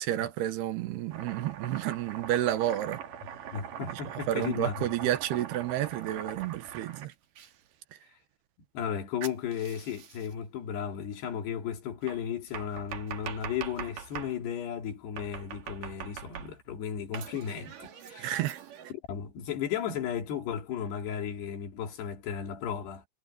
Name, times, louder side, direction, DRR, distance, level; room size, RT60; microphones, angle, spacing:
voice 1, 0.0-3.0 3.8-4.0 4.3-7.1 18.2-18.6, right 13 dB, 75° right, 3.2 m, -30 dB
Domestic sounds home sounds, 1.1-7.5 9.2-10.3 12.1-14.4 15.2-16.7 17.1-18.9, right 9 dB, 60° right, 3.4 m, -42 dB
voice 2, 3.5-4.9 8.7-18.3 19.1-23.1, left 8 dB, 75° left, 4.9 m, -35 dB
omnidirectional pair, 4.8 m